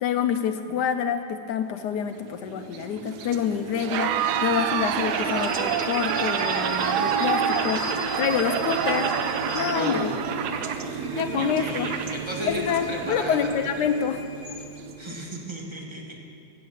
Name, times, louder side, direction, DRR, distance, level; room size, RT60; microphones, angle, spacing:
voice 1, 0.0-9.1 9.5-10.1 11.1-11.9 12.5-14.2, left 8 dB, 75° left, 8 dB, 1.0 m, -27 dB
sound 1, 1.9-15.3, right 5 dB, 65° right, 1.1 m, -32 dB
Crowd, 3.7-11.2, right 9 dB, 85° right, 1.4 m, -28 dB
sound 2, 5.0-10.3 10.8-15.0, left 3 dB, 50° left, 1.1 m, -40 dB
voice 2, 9.7-10.3 11.3-13.5 15.0-16.2, right 1 dB, 15° right, -1 dB, 1.3 m, -34 dB
15.5 x 6.8 x 7.2 m, 2.5 s
omnidirectional pair, 2.3 m